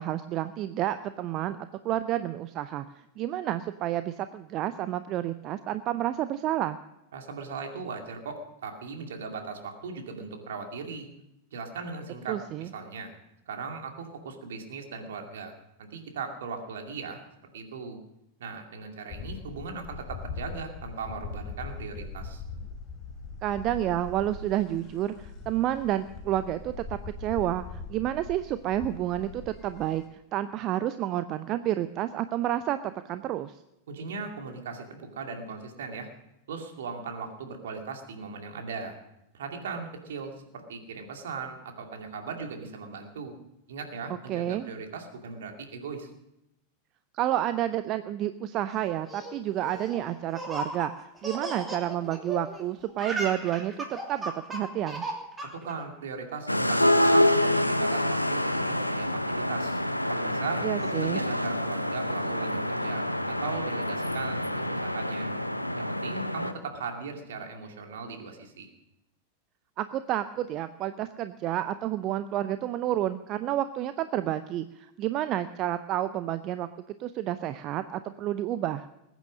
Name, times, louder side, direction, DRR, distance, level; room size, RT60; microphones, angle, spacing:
voice 1, 0.0-1.6 1.8-2.9 3.2-6.8 12.3-12.7 23.4-33.6 44.3-44.7 47.1-50.9 51.2-55.1 60.6-61.2 69.8-76.7 77.0-78.9, right 13 dB, 35° right, 12 dB, 0.6 m, -30 dB
voice 2, 7.1-11.1 11.5-13.1 13.5-15.5 15.8-17.2 17.5-18.0 18.4-22.4 33.9-36.1 36.5-39.0 39.3-43.4 43.7-46.1 55.6-59.1 59.4-59.8 60.1-65.4 65.8-68.7, right 4 dB, 60° right, 3 dB, 2.4 m, -38 dB
sound 1, 19.1-30.1, left 4 dB, 30° left, 4.1 m, -41 dB
Laughter, 48.8-52.6 52.9-55.7, right 2 dB, 15° right, 2.8 m, -36 dB
sound 2, 56.5-66.5, left 1 dB, 90° left, 0.8 m, -27 dB
20.5 x 9.3 x 6.4 m, 0.88 s
figure-of-eight pair, 90°, 0 cm